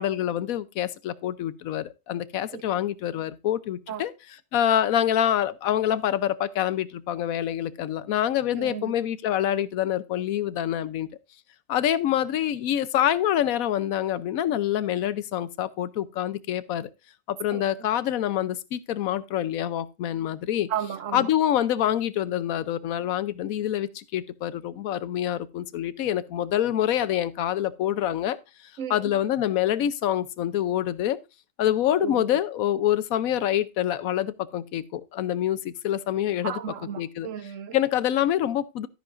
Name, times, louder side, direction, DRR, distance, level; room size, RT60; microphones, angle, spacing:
voice 1, 0.0-4.1 4.5-11.1 11.7-16.9 17.3-20.7 21.1-28.4 28.9-31.2 31.6-36.6 37.0-37.3 37.7-38.9, left 11 dB, 85° left, 1.1 m, -26 dB
voice 2, 8.6-8.9 17.5-17.6 20.7-21.3 28.8-29.0 32.0-32.4 36.4-37.8, right 9 dB, 70° right, 1.0 m, -34 dB
12.5 x 10.5 x 2.5 m
omnidirectional pair, 1.4 m